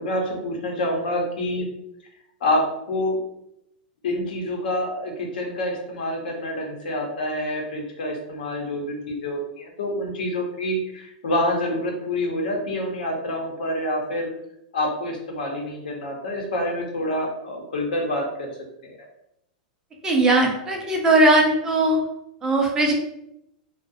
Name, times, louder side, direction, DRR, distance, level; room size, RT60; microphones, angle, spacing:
voice 1, 0.0-1.7 2.4-3.2 4.0-14.3 14.7-18.5 18.8-18.9, left 1 dB, 85° left, 1 dB, 0.7 m, -27 dB
voice 2, 20.0-22.0 22.4-22.9, right 2 dB, 15° right, 1 dB, 0.3 m, -19 dB
2.4 x 2.0 x 2.5 m, 0.79 s
supercardioid pair, 155°, 5 cm